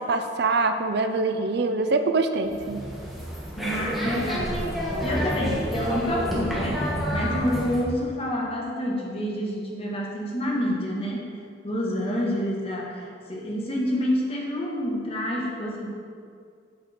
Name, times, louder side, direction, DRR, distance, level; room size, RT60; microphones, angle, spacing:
voice 1, 0.0-2.8, right 3 dB, 60° right, 7 dB, 0.6 m, -24 dB
sound 1, 2.4-7.8, equal, ahead, 1.8 m, -28 dB
voice 2, 3.6-11.3 11.6-15.9, equal, 30° left, -3 dB, 1.7 m, -28 dB
8.2 x 6.6 x 5.9 m, 2.3 s
head